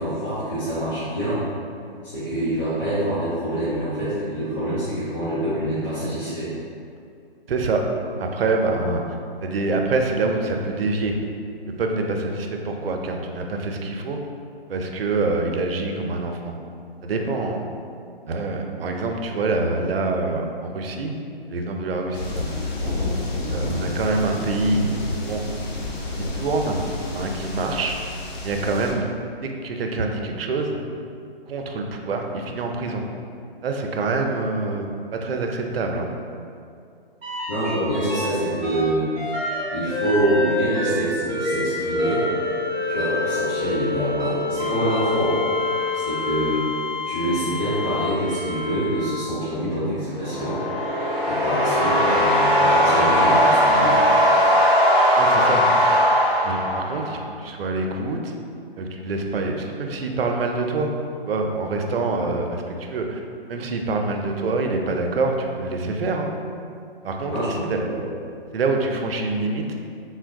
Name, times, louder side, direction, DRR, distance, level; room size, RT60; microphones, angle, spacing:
voice 1, 0.0-1.4 2.0-6.5 37.5-39.3 39.7-42.2 42.9-45.3 45.9-46.6 47.0-50.9 51.3-54.0 67.3-68.0, right 1 dB, 35° left, -14 dB, 0.9 m, -26 dB
voice 2, 7.5-7.8 8.2-9.2 9.4-11.2 11.7-14.3 14.7-16.5 17.0-17.6 18.3-21.2 21.5-22.5 22.8-22.9 23.5-24.9 25.3-25.4 26.2-26.8 27.1-29.0 29.4-30.8 31.5-33.0 33.6-36.1 55.1-55.6 56.4-58.3 58.8-60.9 61.3-63.2 63.5-66.3 67.0-67.8 68.5-69.6, right 3 dB, 70° right, 2 dB, 0.5 m, -25 dB
sound 1, 22.1-28.9, left 2 dB, 85° left, 0.7 m, -29 dB
sound 2, 37.2-38.3 38.6-49.4 50.2-51.8 53.5-53.6, left 2 dB, ahead, 0.4 m, -27 dB
sound 3, 50.1-57.2, equal, 55° left, 1.4 m, -18 dB
3.8 x 2.1 x 2.5 m, 2.4 s
hypercardioid pair, 150°, 31 cm